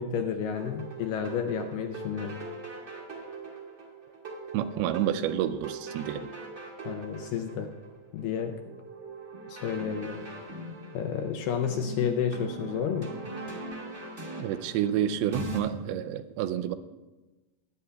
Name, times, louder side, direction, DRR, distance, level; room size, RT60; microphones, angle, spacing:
voice 1, 0.0-2.4 6.9-7.7 8.1-8.6 9.5-10.5 10.9-13.1, left 7 dB, 80° left, 5 dB, 2.0 m, -31 dB
sound 1, 0.6-15.6, right 2 dB, 30° right, 1.5 m, -41 dB
voice 2, 4.5-6.3 14.4-16.8, right 10 dB, 90° right, 12 dB, 2.5 m, -29 dB
20.5 x 9.7 x 2.3 m, 1.1 s
omnidirectional pair, 4.4 m